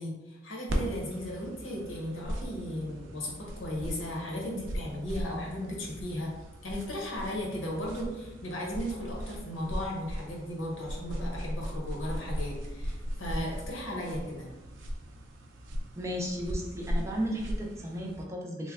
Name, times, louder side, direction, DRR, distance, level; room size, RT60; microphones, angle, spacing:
voice 1, 0.0-6.3 6.6-14.5, left 1 dB, 90° left, -2 dB, 1.0 m, -36 dB
sound 1, 0.7-18.2, equal, 80° right, 0.5 m, -38 dB
voice 2, 16.0-18.7, equal, 15° right, -1 dB, 0.4 m, -34 dB
3.2 x 2.1 x 3.6 m, 1.1 s
head